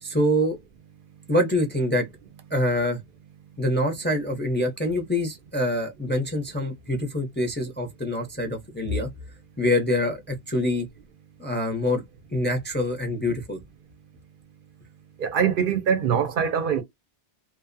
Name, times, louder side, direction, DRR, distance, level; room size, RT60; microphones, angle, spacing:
voice 1, 0.0-0.6 1.3-2.1 2.5-3.0 3.6-9.1 9.6-10.9 11.4-12.0 12.3-13.6, left 1 dB, 15° left, 0.4 m, -25 dB
voice 2, 15.2-16.8, right 7 dB, 60° right, 0.6 m, -23 dB
2.7 x 2.1 x 2.4 m
omnidirectional pair, 1.1 m